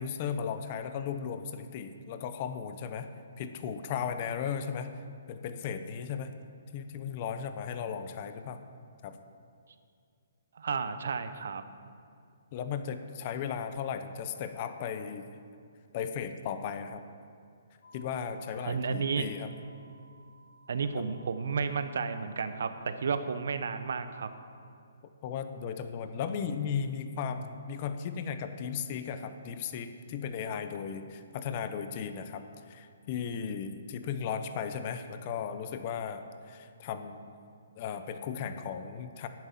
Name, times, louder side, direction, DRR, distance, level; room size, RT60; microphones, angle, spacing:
voice 1, 0.0-3.1 3.4-4.9 5.3-6.3 6.7-8.6 9.0-9.2 12.5-15.3 15.9-17.0 17.9-19.5 21.0-21.1 25.2-37.2 37.8-39.3, left 7 dB, 35° left, 9 dB, 0.8 m, -36 dB
voice 2, 10.5-11.6 18.6-19.3 20.7-24.3, right 5 dB, 70° right, 10 dB, 0.9 m, -32 dB
sound 1, 17.8-24.3, right 1 dB, 65° left, 2.4 m, -59 dB
10.5 x 9.1 x 7.5 m, 2.3 s
hypercardioid pair, 155°, 0 cm